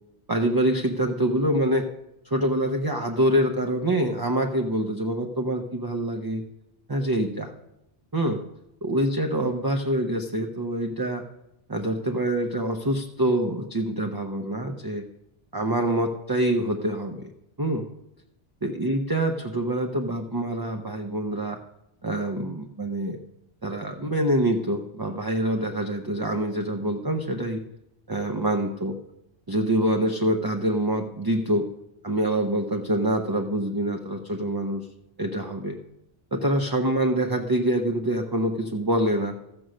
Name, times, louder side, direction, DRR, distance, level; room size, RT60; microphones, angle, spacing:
voice 1, 0.3-1.9 2.2-6.4 6.9-7.5 8.1-8.4 8.8-11.2 11.7-15.0 15.5-17.3 17.6-17.9 18.6-21.6 22.0-23.2 23.6-27.6 28.1-29.0 29.5-31.6 32.0-34.9 35.2-35.8 36.3-39.3, right 1 dB, 25° right, 3 dB, 0.5 m, -25 dB
14.0 x 6.2 x 6.3 m, 0.87 s
omnidirectional pair, 1.2 m